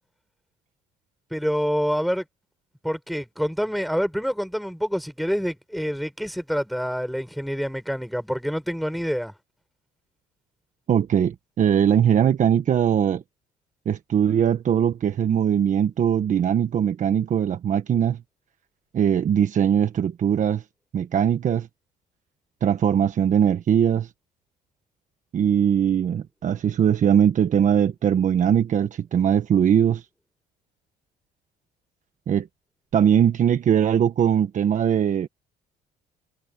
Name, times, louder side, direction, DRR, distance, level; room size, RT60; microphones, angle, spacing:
voice 1, 1.3-2.2 2.8-9.3, equal, ahead, 6.8 m, -27 dB
voice 2, 10.9-13.2 13.8-18.2 18.9-20.6 20.9-21.7 22.6-24.1 25.3-30.0 32.3-32.5 32.9-35.3, right 9 dB, 50° right, 1.4 m, -21 dB
cardioid pair, 110°, 17 cm